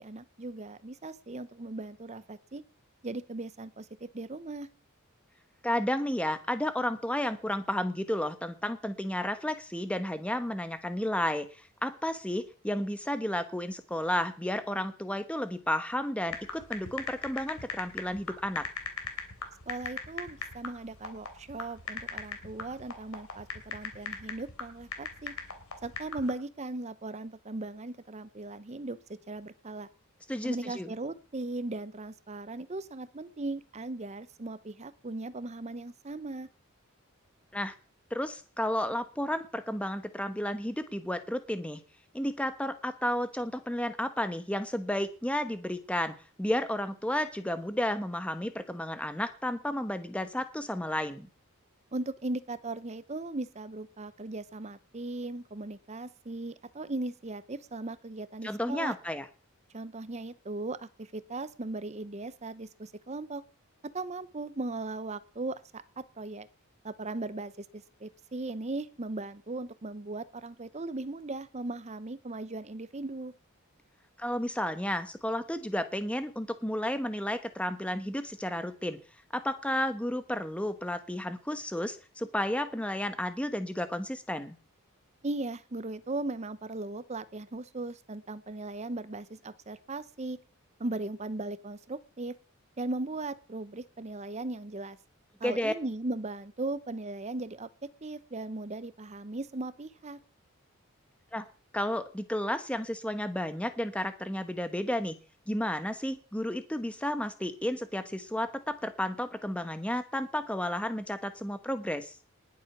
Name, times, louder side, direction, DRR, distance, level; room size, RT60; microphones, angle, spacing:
voice 1, 0.0-2.6 3.0-4.7 19.7-25.4 25.8-29.0 29.3-29.9 30.4-36.5 51.9-58.9 59.7-63.4 63.8-66.5 66.8-73.3 85.2-90.4 90.8-92.4 92.8-95.0 95.4-100.2, right 2 dB, 30° right, 16 dB, 0.7 m, -38 dB
voice 2, 5.6-11.5 11.8-18.7 30.3-30.9 37.5-37.7 38.1-41.8 42.1-51.3 58.4-59.2 74.2-79.0 79.3-84.6 95.4-95.7 101.3-101.4 101.7-105.1 105.5-112.1, left 1 dB, 5° left, 10 dB, 1.1 m, -32 dB
sound 1, 16.3-26.3, left 5 dB, 80° left, 3.1 m, -40 dB
19.5 x 7.5 x 5.9 m, 0.39 s
head